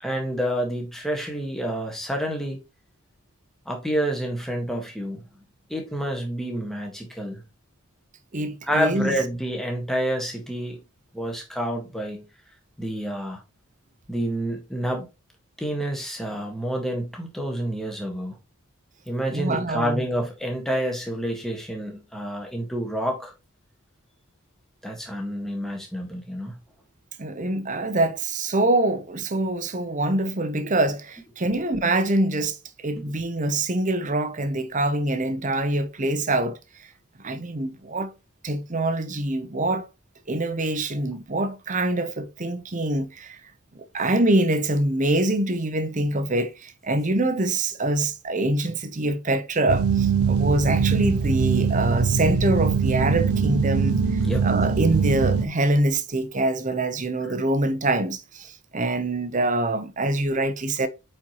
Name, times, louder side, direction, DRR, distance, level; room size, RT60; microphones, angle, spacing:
voice 1, 0.0-2.6 3.7-5.2 5.7-7.4 8.7-10.8 11.1-12.3 12.8-13.4 14.1-15.1 15.6-18.3 19.1-23.3 24.8-26.5 54.2-54.5, equal, ahead, 1.6 m, -28 dB
voice 2, 8.3-9.1 19.3-20.1 27.2-32.6 32.8-36.6 37.2-38.1 38.4-39.9 40.3-43.4 43.7-54.0 54.4-60.9, right 2 dB, 35° right, 0.8 m, -24 dB
sound 1, 49.7-55.5, right 6 dB, 80° right, 0.6 m, -22 dB
8.5 x 4.5 x 3.0 m
head